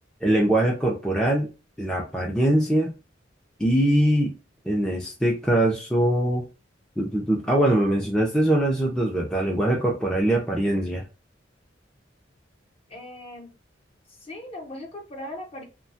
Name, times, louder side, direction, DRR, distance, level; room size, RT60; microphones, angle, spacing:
voice 1, 0.2-1.5 1.8-2.9 3.6-4.3 4.7-6.4 7.0-11.0, right 1 dB, 5° left, -2 dB, 0.4 m, -22 dB
voice 2, 12.9-13.5 14.1-15.6, left 1 dB, 30° left, 2 dB, 0.8 m, -39 dB
2.7 x 2.2 x 2.6 m, 0.30 s
head